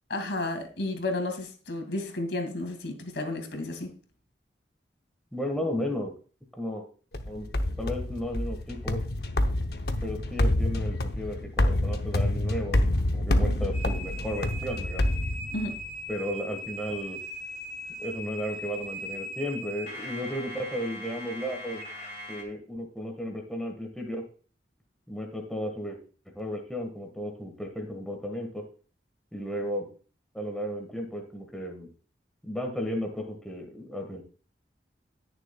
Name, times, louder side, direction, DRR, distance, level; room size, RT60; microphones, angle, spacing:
voice 1, 0.1-3.9 15.5-15.8, left 2 dB, 80° left, 2.3 m, -32 dB
voice 2, 5.3-6.1 6.6-6.8 7.3-7.5 7.8-9.0 10.0-12.8 13.1-15.1 16.1-17.2 18.0-21.8 22.3-24.2 25.1-26.0 26.3-28.6 29.3-29.9 30.3-31.9 32.4-34.2, equal, 5° left, 1.5 m, -34 dB
sound 1, 7.1-15.9, left 1 dB, 60° left, 0.8 m, -27 dB
sound 2, 13.7-22.4, equal, 40° left, 2.3 m, -39 dB
19.0 x 6.8 x 2.3 m
head